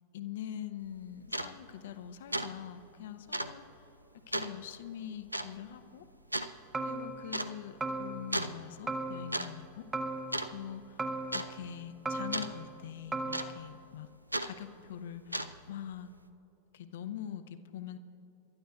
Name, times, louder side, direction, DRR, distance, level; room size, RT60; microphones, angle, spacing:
voice 1, 0.1-3.6 4.3-6.1 6.8-9.9 10.5-14.1 14.4-16.1 16.7-18.0, left 10 dB, 55° left, 10 dB, 0.7 m, -43 dB
sound 1, 0.8-0.9 1.3-1.5 1.9-2.1 2.3-2.5 2.8-2.9 3.3-3.5 4.3-4.5 5.3-5.5 6.3-6.5 7.3-7.5 8.3-8.6 9.1-9.5 9.7-10.0 10.3-10.8 11.3-11.5 12.3-12.5 13.3-13.7 14.3-14.5 15.2-15.7, right 1 dB, 85° right, 0.4 m, -34 dB
sound 2, 6.7-7.5 7.8-8.5 8.9-9.6 9.9-10.7 11.0-11.8 12.0-12.8 13.1-13.6, right 2 dB, 15° right, 0.7 m, -37 dB
28.5 x 12.0 x 2.4 m, 2.9 s
figure-of-eight pair, 90°, 0 cm